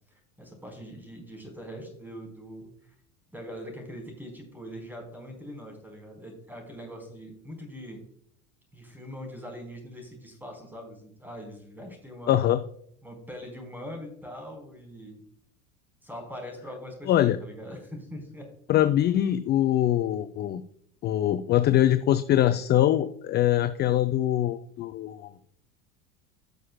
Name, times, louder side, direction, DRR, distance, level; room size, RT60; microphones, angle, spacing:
voice 1, 0.4-2.7 3.3-8.0 8.7-12.4 13.0-15.3 16.0-18.4, equal, 5° right, 2 dB, 4.3 m, -42 dB
voice 2, 12.3-12.6 17.1-17.4 18.7-20.6 21.0-25.3, left 12 dB, 25° left, 11 dB, 0.4 m, -23 dB
16.5 x 6.5 x 2.3 m, 0.65 s
figure-of-eight pair, 75°, 42 cm